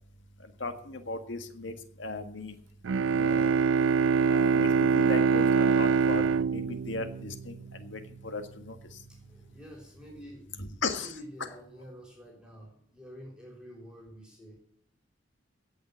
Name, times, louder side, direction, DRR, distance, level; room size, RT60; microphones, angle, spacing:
voice 1, 0.4-2.6 3.1-3.6 4.3-9.0 10.6-11.1, left 3 dB, 70° left, 7 dB, 1.7 m, -37 dB
Bowed string instrument, 2.8-7.8, right 5 dB, 80° right, 0.4 m, -24 dB
voice 2, 9.1-10.4 11.0-14.6, equal, 5° right, -1 dB, 3.5 m, -48 dB
17.0 x 5.7 x 8.0 m, 0.65 s
head